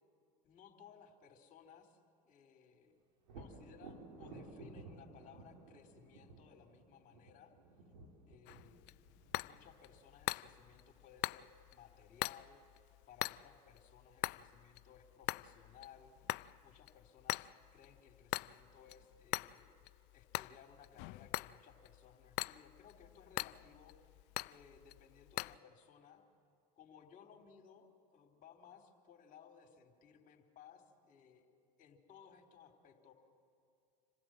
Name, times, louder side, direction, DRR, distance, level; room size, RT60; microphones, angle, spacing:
voice 1, 0.4-2.0 2.2-2.9 3.4-7.5 8.3-9.0 9.4-12.6 13.1-16.2 16.6-19.8 20.1-24.2 24.4-26.2 26.8-31.5 31.8-33.1, left 7 dB, 40° left, 3 dB, 3.6 m, -61 dB
Thunder, 3.2-10.9 14.6-14.7 15.1-16.0, right 3 dB, 90° right, 3.6 m, -55 dB
sound 1, 8.5-25.6, left 20 dB, 60° left, 0.5 m, -44 dB
27.0 x 16.0 x 7.8 m, 2.6 s
hypercardioid pair, 95°, 21 cm